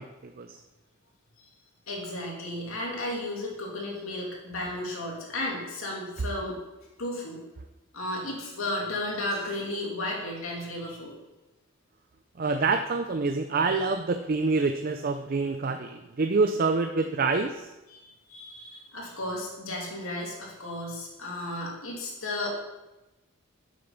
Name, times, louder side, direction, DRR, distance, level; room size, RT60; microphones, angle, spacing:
voice 1, 0.2-0.6 12.4-17.7, right 4 dB, 45° right, 7 dB, 0.5 m, -26 dB
voice 2, 1.9-6.6 7.0-7.4 7.9-11.2 17.9-18.0 18.3-22.5, left 1 dB, 75° left, -2 dB, 2.7 m, -34 dB
8.0 x 6.4 x 5.9 m, 1.0 s
head